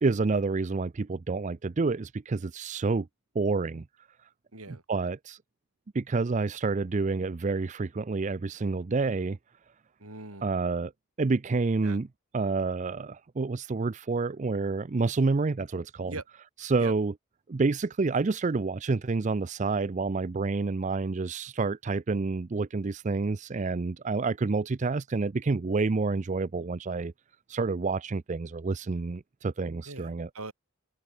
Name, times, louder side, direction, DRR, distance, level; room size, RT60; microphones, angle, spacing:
voice 1, 0.0-3.1 3.3-3.9 4.7-5.4 5.9-9.4 10.4-10.9 11.2-12.1 12.3-16.1 16.6-17.1 17.5-27.1 27.5-30.3, right 3 dB, 35° right, 0.4 m, -28 dB
voice 2, 4.5-4.8 10.0-10.5 11.8-12.0 16.1-16.2 16.8-16.9 29.9-30.5, right 3 dB, 90° right, 4.7 m, -41 dB
head